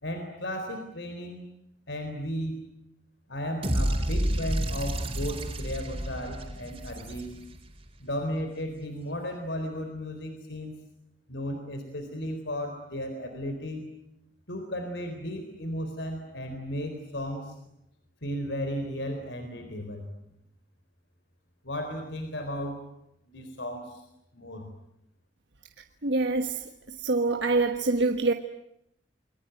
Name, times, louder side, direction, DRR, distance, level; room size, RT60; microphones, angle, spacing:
voice 1, 0.0-1.5 1.9-2.6 3.3-7.4 8.0-10.7 11.3-13.9 14.5-17.5 18.2-20.1 21.6-22.8 23.3-24.0 24.3-24.7, equal, 70° left, 4.1 m, -35 dB
sound 1, 3.6-7.7, equal, 30° right, 4.4 m, -30 dB
voice 2, 26.0-26.6 27.0-28.3, right 3 dB, 65° right, 1.4 m, -25 dB
28.5 x 22.5 x 9.2 m
head